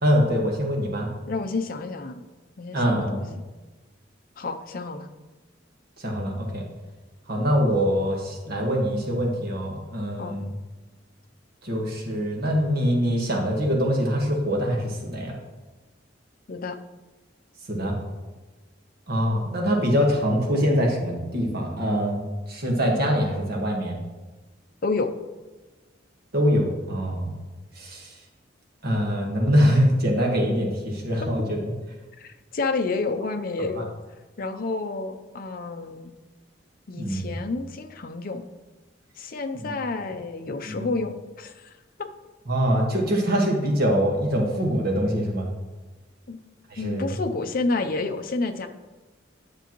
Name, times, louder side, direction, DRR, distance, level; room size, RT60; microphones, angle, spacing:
voice 1, 0.0-1.1 2.7-3.2 6.0-6.6 7.3-10.5 11.6-15.4 17.7-17.9 19.1-22.2 22.5-23.9 26.3-27.3 27.8-28.1 28.8-31.6 33.8-33.9 37.0-37.3 39.6-39.7 40.7-40.9 42.5-45.5 46.7-47.1, equal, 55° right, 0 dB, 1.5 m, -24 dB
voice 2, 1.3-2.2 2.6-3.4 4.4-5.1 10.2-10.4 16.5-16.8 24.8-25.1 32.2-33.9 34.4-36.1 36.9-38.5 39.2-41.8 46.3-46.4 46.8-48.7, left 3 dB, 50° left, 7 dB, 0.6 m, -29 dB
9.6 x 6.9 x 3.0 m, 1.2 s
head